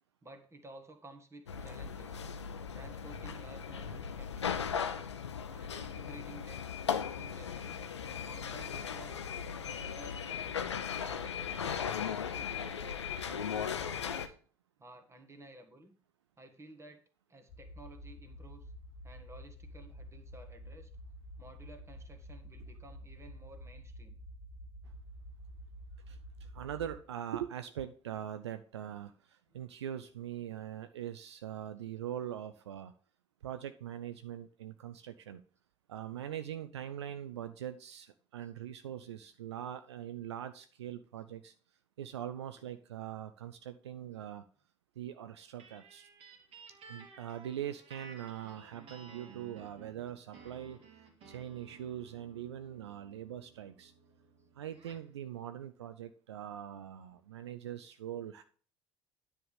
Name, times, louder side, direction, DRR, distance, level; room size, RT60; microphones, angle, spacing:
voice 1, 0.2-2.2 2.7-5.1 5.5-6.7 7.0-7.9 8.2-9.3 9.6-10.6 11.0-14.3 14.8-16.0 16.4-17.0 17.3-18.7 19.0-20.9 21.4-24.1 29.5-29.6 29.9-30.1 38.4-38.5 42.5-42.7 54.1-54.3, right 1 dB, 20° right, 7 dB, 1.7 m, -54 dB
sound 1, 1.5-14.3, left 7 dB, 80° left, 0.6 m, -37 dB
sound 2, 17.5-27.0, equal, 45° left, 1.2 m, -49 dB
voice 2, 26.1-32.9 33.4-35.4 35.9-41.5 42.0-44.4 45.0-46.1 46.9-50.8 51.3-53.9 54.5-58.4, right 10 dB, 75° right, 10 dB, 0.5 m, -42 dB
sound 3, 45.6-55.1, right 4 dB, 45° right, 2.1 m, -55 dB
9.9 x 3.6 x 7.2 m, 0.41 s
figure-of-eight pair, 60°, 14 cm